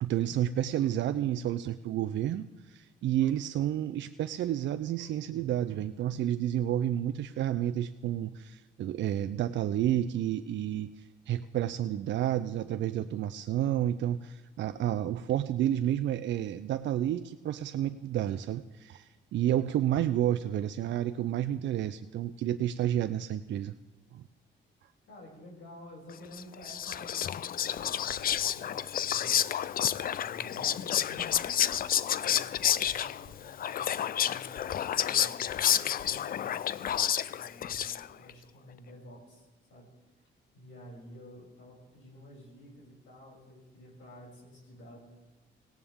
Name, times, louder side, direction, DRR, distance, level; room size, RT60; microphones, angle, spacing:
voice 1, 0.0-23.7 24.1-24.2, right 11 dB, 65° right, 9 dB, 0.5 m, -30 dB
voice 2, 25.0-29.4 30.2-31.7 32.2-36.6 37.3-40.2 40.5-45.0, equal, 75° left, -4 dB, 7.0 m, -51 dB
Whispering, 26.3-38.3, left 10 dB, 50° left, 0.4 m, -30 dB
18.0 x 17.0 x 3.6 m, 1.2 s
cardioid pair, 90°, 20 cm